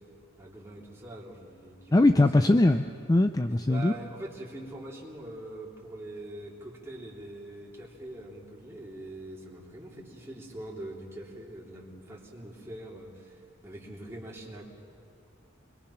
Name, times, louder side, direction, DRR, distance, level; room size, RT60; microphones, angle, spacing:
voice 1, 0.4-2.6 3.7-14.6, right 1 dB, 15° right, -4 dB, 3.1 m, -43 dB
voice 2, 1.9-3.9, left 2 dB, 20° left, 8 dB, 0.4 m, -21 dB
27.5 x 22.0 x 5.8 m, 2.3 s
head